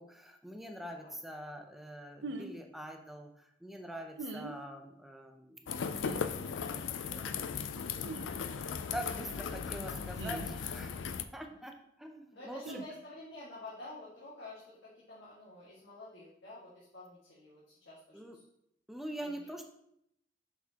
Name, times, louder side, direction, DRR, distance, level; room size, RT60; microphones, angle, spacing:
voice 1, 0.0-5.6 6.7-7.3 8.9-10.9 11.3-11.7 12.0-12.8 18.1-18.4 18.9-19.6, right 1 dB, ahead, 4 dB, 0.6 m, -44 dB
sound 1, 2.2-2.5 4.2-4.6 6.0-6.3 8.0-8.3 10.2-10.5 12.6-12.9, right 2 dB, 70° right, 0.5 m, -41 dB
sound 2, 5.7-11.3, left 6 dB, 90° left, 0.4 m, -37 dB
voice 2, 12.3-18.4 19.2-19.5, left 2 dB, 75° left, -8 dB, 1.8 m, -50 dB
6.3 x 5.9 x 2.9 m, 0.76 s
head